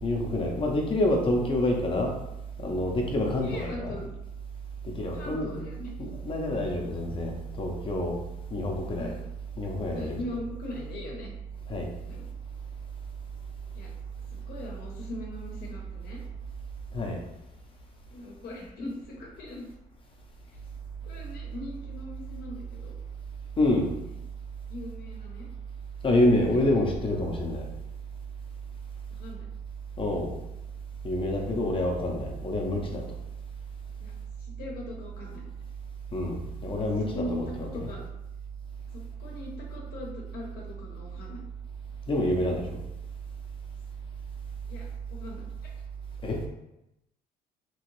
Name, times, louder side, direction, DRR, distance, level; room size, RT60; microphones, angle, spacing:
voice 1, 0.0-2.1 2.6-4.0 4.8-5.6 6.0-8.2 8.5-9.1 9.6-10.4 11.7-11.9 16.9-17.2 23.6-23.9 26.0-27.7 30.0-30.4 31.0-33.0 36.1-37.9 42.1-42.8 46.2-46.5, left 1 dB, 30° left, 1 dB, 0.7 m, -27 dB
voice 2, 3.4-4.1 5.1-5.9 9.0-9.2 9.9-11.3 12.1-12.2 13.7-13.9 14.3-16.2 18.1-19.7 20.5-20.6 21.0-22.9 23.8-24.0 24.7-25.5 26.3-26.7 29.1-29.5 34.0-34.1 34.4-35.4 36.7-38.0 38.9-41.4 44.7-45.4, left 1 dB, 65° left, -2 dB, 0.8 m, -40 dB
3.0 x 2.8 x 3.0 m, 0.89 s
cardioid pair, 110°, 17 cm